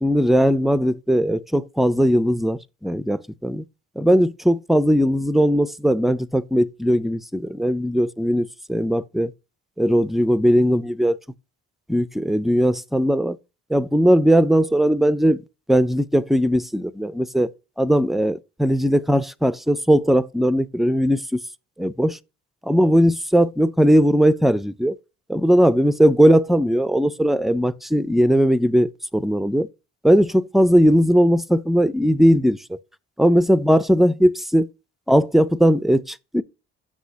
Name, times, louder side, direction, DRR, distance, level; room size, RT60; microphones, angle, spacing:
voice 1, 0.0-3.6 4.0-9.3 9.8-11.2 11.9-13.4 13.7-15.4 15.7-17.5 17.8-21.4 21.8-22.2 22.6-25.0 25.3-29.7 30.0-32.8 33.2-34.7 35.1-36.4, equal, ahead, 0.3 m, -18 dB
7.7 x 6.2 x 2.7 m
cardioid pair, 90°, 30 cm